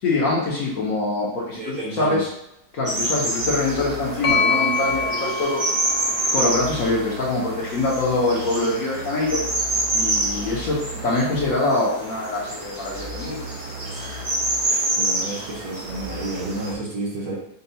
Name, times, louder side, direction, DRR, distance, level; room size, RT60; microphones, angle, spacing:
voice 1, 0.0-2.3 2.7-5.6 6.3-9.4 9.9-13.4, left 2 dB, 60° left, -4 dB, 1.1 m, -24 dB
voice 2, 1.6-2.2 14.7-17.4, right 2 dB, 60° right, -4 dB, 1.3 m, -31 dB
sound 1, 2.9-16.7, right 1 dB, 40° right, 0.4 m, -27 dB
sound 2, 4.2-8.0, left 3 dB, 80° left, 1.7 m, -26 dB
5.5 x 2.3 x 2.7 m, 0.78 s
omnidirectional pair, 1.9 m